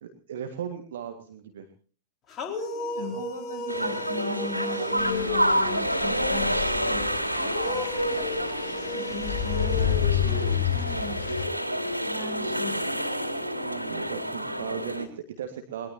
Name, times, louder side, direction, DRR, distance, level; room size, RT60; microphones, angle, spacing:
voice 1, 0.0-1.7 13.6-15.9, right 8 dB, 60° right, 6 dB, 1.8 m, -37 dB
sound 1, 2.3-6.0 7.4-11.0, left 3 dB, 25° left, 4.6 m, -35 dB
voice 2, 2.6-7.0 7.3-11.4 12.0-12.9, left 2 dB, 85° right, 2 dB, 6.4 m, -38 dB
sound 2, 3.7-15.0, equal, 90° left, 2.3 m, -29 dB
sound 3, 5.0-11.5, left 10 dB, 60° left, 1.2 m, -30 dB
22.5 x 21.5 x 2.9 m, 0.41 s
figure-of-eight pair, 90°, 0 cm